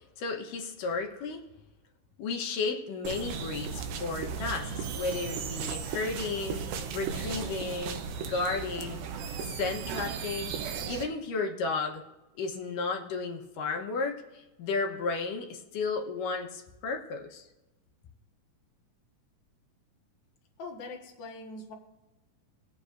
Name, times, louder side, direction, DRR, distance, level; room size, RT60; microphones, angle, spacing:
voice 1, 0.2-1.4 2.2-6.6 6.9-9.0 9.4-12.0 12.4-17.4, left 4 dB, 75° left, 2 dB, 2.5 m, -33 dB
sound 1, 3.0-11.0, right 6 dB, 90° right, 2.7 m, -36 dB
sound 2, 4.8-7.6 8.4-8.6 9.2-10.9, right 9 dB, 70° right, 2.2 m, -45 dB
voice 2, 20.6-21.7, left 3 dB, 50° left, 0 dB, 1.5 m, -42 dB
21.0 x 8.2 x 2.6 m, 1.0 s
omnidirectional pair, 4.0 m